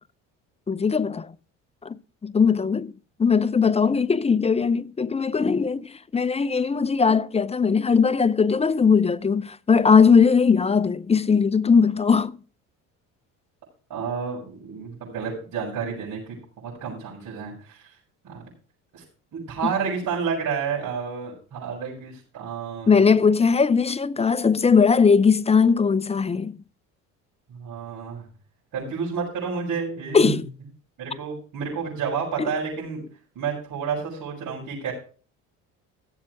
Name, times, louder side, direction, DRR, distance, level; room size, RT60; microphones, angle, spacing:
voice 1, 0.7-1.3 1.8-2.9 3.2-12.4 19.6-19.7 22.9-26.6 30.1-30.5, left 5 dB, 15° left, 0.5 m, -19 dB
voice 2, 13.9-16.2 16.6-17.9 18.2-18.4 18.9-19.0 19.3-23.1 27.5-28.2 28.7-30.4 31.0-33.0 33.3-34.9, right 6 dB, 55° right, 6.4 m, -30 dB
15.5 x 7.4 x 4.8 m
supercardioid pair, 80°, 36 cm